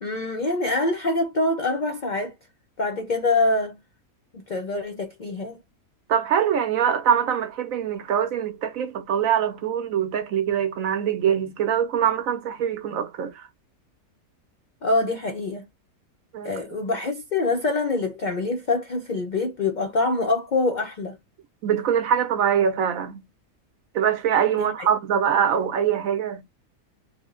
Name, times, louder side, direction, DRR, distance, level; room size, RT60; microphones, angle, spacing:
voice 1, 0.0-2.3 2.8-3.8 4.3-5.6 14.8-15.6 16.4-21.2 24.6-24.9, left 2 dB, 75° left, 0.4 m, -25 dB
voice 2, 6.1-13.5 16.3-16.5 21.6-23.2 23.9-26.4, right 8 dB, 70° right, 1.1 m, -23 dB
3.4 x 2.1 x 3.6 m
omnidirectional pair, 1.6 m